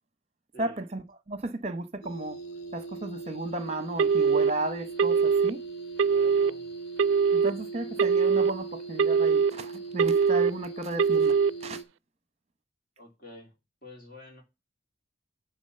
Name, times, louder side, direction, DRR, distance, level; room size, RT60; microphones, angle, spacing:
voice 1, 0.6-2.4 2.7-5.6 7.3-11.8, right 2 dB, 35° right, 0.9 m, -34 dB
sound 1, 2.0-11.8, right 3 dB, 90° left, 2.5 m, -40 dB
Telephone, 4.0-4.5 5.0-5.5 6.0-6.5 7.0-7.5 8.0-8.5 9.0-9.5 10.0-10.5 11.0-11.5, right 6 dB, 80° right, 0.4 m, -22 dB
voice 2, 6.1-6.7 13.0-13.6 13.8-14.4, left 2 dB, 50° left, 2.8 m, -48 dB
9.9 x 3.7 x 6.7 m
head